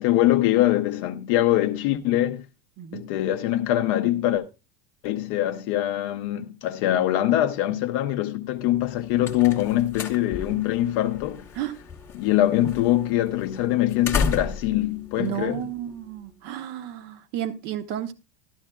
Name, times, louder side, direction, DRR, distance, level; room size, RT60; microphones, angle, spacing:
voice 1, 0.0-2.4 2.9-4.5 5.0-11.5 12.1-15.6, left 13 dB, 35° left, 0.6 m, -23 dB
voice 2, 2.8-3.1 11.5-11.8 15.2-18.1, right 11 dB, 30° right, 0.8 m, -32 dB
sound 1, 8.7-16.2, left 5 dB, 10° left, 0.8 m, -34 dB
13.0 x 12.5 x 2.2 m
supercardioid pair, 180°, 30 cm